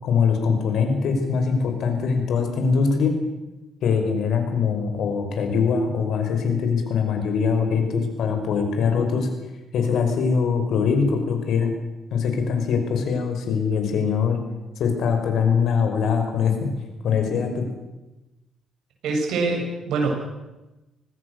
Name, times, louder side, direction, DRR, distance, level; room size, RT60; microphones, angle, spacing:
voice 1, 0.0-3.2 3.8-9.3 9.7-11.7 12.1-14.4 14.8-16.7 17.0-17.6, left 6 dB, 75° left, 5 dB, 5.5 m, -22 dB
voice 2, 19.0-20.1, right 3 dB, 85° right, 1 dB, 7.8 m, -24 dB
25.0 x 19.5 x 6.7 m, 1.0 s
cardioid pair, 90°, 0 cm